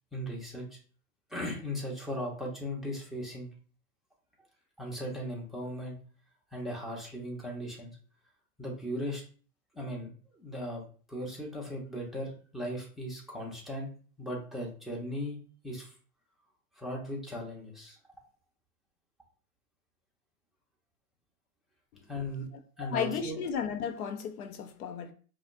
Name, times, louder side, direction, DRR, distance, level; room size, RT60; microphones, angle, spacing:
voice 1, 0.1-0.8 1.3-3.5 4.8-6.0 6.5-8.0 8.6-9.2 9.7-10.1 10.4-10.8 11.1-13.9 14.2-15.4 15.6-15.9 16.7-18.0 22.1-22.5 22.8-23.4, equal, ahead, 0.9 m, -37 dB
voice 2, 22.8-25.1, left 7 dB, 70° left, 0.8 m, -34 dB
4.8 x 2.3 x 2.6 m
hypercardioid pair, 120°, 46 cm